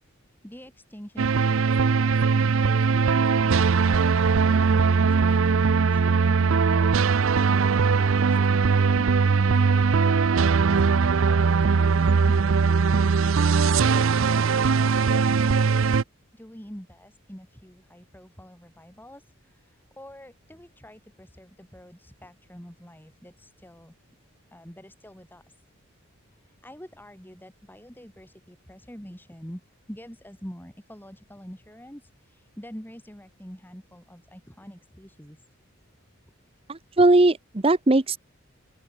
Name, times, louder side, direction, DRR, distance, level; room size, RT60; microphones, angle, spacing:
voice 1, 0.3-4.0 4.5-10.8 11.1-13.1 13.4-15.9 16.3-23.9 24.5-25.5 26.3-29.6 29.9-35.4, equal, 10° left, 4.6 m, -46 dB
sound 1, 1.2-16.0, right 5 dB, 70° right, 0.5 m, -20 dB
voice 2, 36.7-38.2, right 2 dB, 25° right, 0.8 m, -19 dB
open air
head